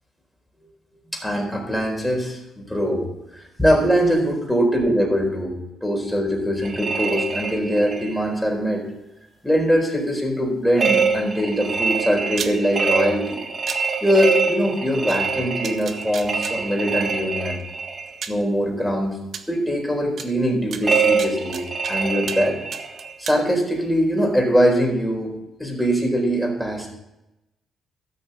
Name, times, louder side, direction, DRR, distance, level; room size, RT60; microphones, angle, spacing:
voice 1, 1.1-3.1 3.3-8.8 9.4-13.4 14.0-17.6 18.3-19.2 19.5-22.6 23.2-26.9, equal, 5° left, 0 dB, 4.3 m, -22 dB
sound 1, 6.6-8.2 10.8-18.1 20.8-23.1, right 4 dB, 35° right, 2.0 m, -25 dB
sound 2, 12.3-12.5 13.7-13.8 15.1-15.2 15.6-16.5 17.6-17.7 18.2-18.4 19.3-19.4 20.2-20.3 20.7-21.9 22.3-22.4 22.7-23.4, right 6 dB, 60° right, 1.2 m, -32 dB
13.5 x 6.7 x 6.9 m, 0.92 s
cardioid pair, 90°, 0 cm